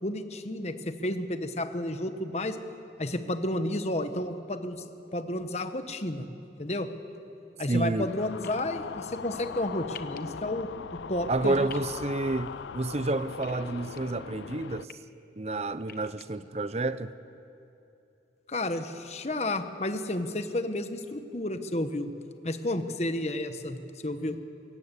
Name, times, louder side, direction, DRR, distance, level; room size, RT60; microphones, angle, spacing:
voice 1, 0.0-2.6 3.0-6.3 6.6-6.9 7.6-10.7 11.1-11.7 18.5-22.1 22.4-23.8 24.0-24.4, left 1 dB, 40° left, 9 dB, 1.2 m, -31 dB
voice 2, 7.7-8.1 11.3-14.9 15.4-17.1, right 2 dB, 35° right, 13 dB, 0.7 m, -29 dB
sound 1, 8.0-14.9, left 6 dB, 85° left, 0.4 m, -40 dB
sound 2, 8.4-8.6 9.9-10.2 11.7-11.9 13.4-14.0 14.6-14.9 15.8-16.3, left 9 dB, 55° left, 1.0 m, -45 dB
22.5 x 17.5 x 8.3 m, 2.8 s
head